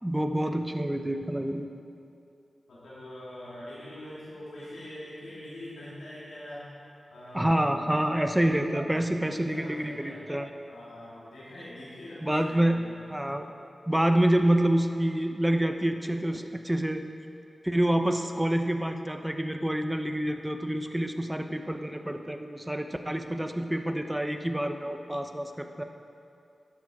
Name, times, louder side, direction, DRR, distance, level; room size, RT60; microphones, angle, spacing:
voice 1, 0.0-1.6 7.3-10.5 12.2-12.8 13.1-13.5 13.9-17.0 17.6-25.8, right 1 dB, 10° right, 6 dB, 0.8 m, -27 dB
voice 2, 2.7-6.6 7.1-8.0 9.3-10.2 10.7-13.1, left 1 dB, 90° left, -10 dB, 2.5 m, -43 dB
11.0 x 7.4 x 4.8 m, 2.6 s
cardioid pair, 40°, 0 cm